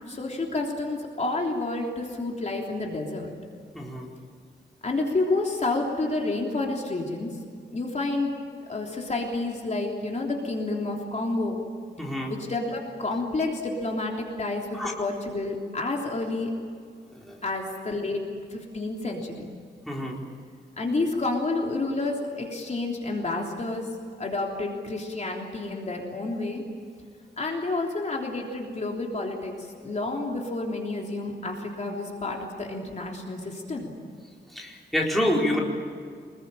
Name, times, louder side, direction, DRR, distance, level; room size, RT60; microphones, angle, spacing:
voice 1, 0.1-3.3 4.8-7.3 7.7-8.3 8.7-11.6 12.3-16.5 17.4-18.2 18.5-19.5 20.8-23.9 24.2-26.6 27.4-33.9, left 2 dB, 40° left, 0 dB, 3.4 m, -29 dB
voice 2, 12.0-12.3 14.7-14.9 19.9-20.2 34.5-35.6, left 1 dB, ahead, -2 dB, 4.3 m, -27 dB
26.0 x 21.0 x 9.0 m, 2.1 s
wide cardioid pair, 175°, 18 cm